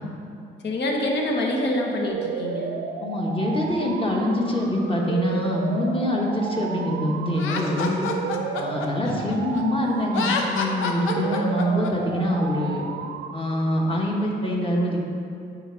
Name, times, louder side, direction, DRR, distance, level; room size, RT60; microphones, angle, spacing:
voice 1, 0.6-2.7, left 1 dB, 60° left, 0 dB, 1.1 m, -25 dB
sound 1, 2.1-14.1, right 6 dB, 75° right, 0.6 m, -33 dB
voice 2, 3.0-8.1 8.5-12.8 13.3-15.1, equal, 25° left, -1 dB, 1.3 m, -24 dB
Laughter, 7.4-9.6 10.1-11.9, left 4 dB, 80° left, 0.7 m, -28 dB
9.0 x 4.6 x 3.9 m, 2.7 s
cardioid pair, 90°, 20 cm